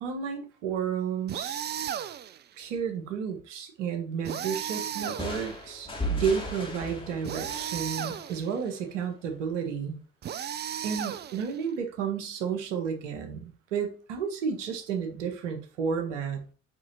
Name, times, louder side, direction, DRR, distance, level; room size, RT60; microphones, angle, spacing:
voice 1, 0.0-1.6 2.6-10.0 10.8-16.5, right 6 dB, 70° right, 5 dB, 1.5 m, -32 dB
sound 1, 1.3-2.4 4.2-5.7 7.2-8.5 10.2-11.6, right 9 dB, 30° right, 0.5 m, -35 dB
sound 2, 5.2-8.9, equal, 15° left, 2.5 m, -36 dB
7.0 x 5.6 x 2.8 m, 0.37 s
figure-of-eight pair, 55°, 37 cm